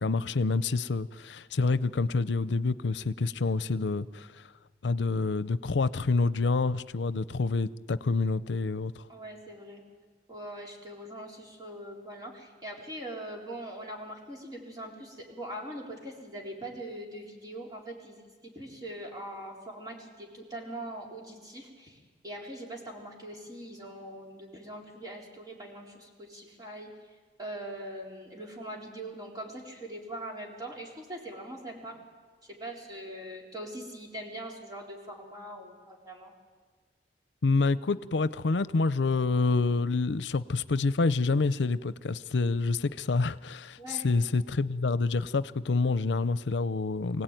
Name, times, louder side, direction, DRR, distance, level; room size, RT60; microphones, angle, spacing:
voice 1, 0.0-4.5 4.8-9.0 37.4-47.2, left 3 dB, 90° left, 16 dB, 0.6 m, -27 dB
voice 2, 9.1-9.8 10.3-26.9 27.4-32.0 32.4-36.3 43.8-44.1, right 1 dB, 20° right, -1 dB, 4.3 m, -42 dB
25.0 x 17.5 x 9.2 m, 1.5 s
head